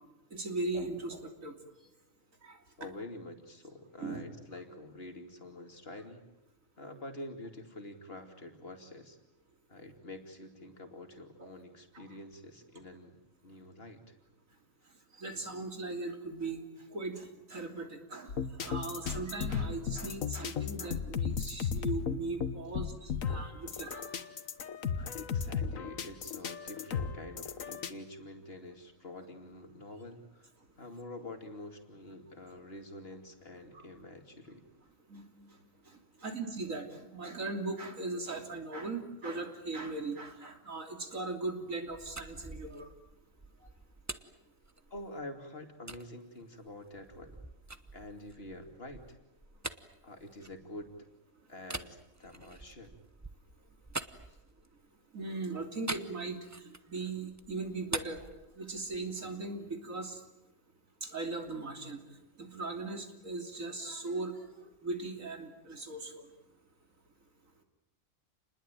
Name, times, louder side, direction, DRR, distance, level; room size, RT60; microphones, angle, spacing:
voice 1, 0.3-1.5 2.4-2.6 4.0-4.2 11.4-11.5 15.2-16.6 16.9-18.3 18.6-24.2 35.1-35.5 36.2-42.9 55.1-56.4 56.7-58.3 58.6-60.2 61.0-62.0 62.4-64.4 64.8-66.3, right 3 dB, 85° right, 5 dB, 3.5 m, -38 dB
voice 2, 2.8-6.2 6.8-9.2 9.7-13.2 13.4-14.0 24.9-30.5 30.8-34.6 44.9-47.4 47.9-49.0 50.0-50.9 51.5-52.9 54.2-54.4 57.0-57.1, left 1 dB, 45° left, 5 dB, 3.0 m, -47 dB
sound 1, 18.3-27.9, left 6 dB, 90° left, 1.6 m, -35 dB
sound 2, 41.9-45.2 45.9-46.1 46.6-51.0 51.6-54.9 55.9-57.0 57.3-59.1, right 2 dB, 15° right, 0.9 m, -44 dB
28.5 x 20.5 x 9.1 m, 0.90 s
omnidirectional pair, 1.4 m